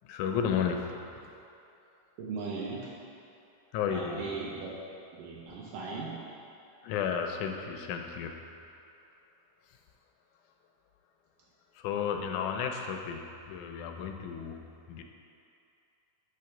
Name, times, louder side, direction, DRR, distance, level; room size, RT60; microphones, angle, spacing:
voice 1, 0.0-1.4 3.7-4.2 6.8-8.4 9.7-9.8 11.7-14.6 14.9-15.0, left 7 dB, 80° left, 4 dB, 1.7 m, -33 dB
voice 2, 2.2-2.9 3.9-4.7 5.1-6.2, right 4 dB, 80° right, -5 dB, 2.3 m, -38 dB
8.6 x 3.3 x 5.8 m, 2.6 s
omnidirectional pair, 3.8 m